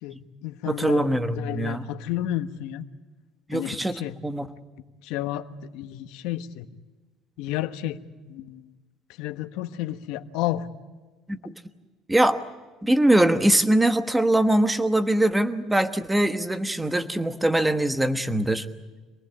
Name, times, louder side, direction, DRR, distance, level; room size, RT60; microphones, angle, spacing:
voice 1, 0.0-2.9 3.5-4.2 5.0-6.7 7.4-8.7 9.2-10.7, left 13 dB, 80° left, 9 dB, 1.3 m, -32 dB
voice 2, 0.7-1.9 3.5-4.5 11.3-11.5 12.1-12.4 12.8-18.6, right 1 dB, 5° right, 9 dB, 1.2 m, -22 dB
26.5 x 19.0 x 8.8 m, 1.3 s
cardioid pair, 150°, 0 cm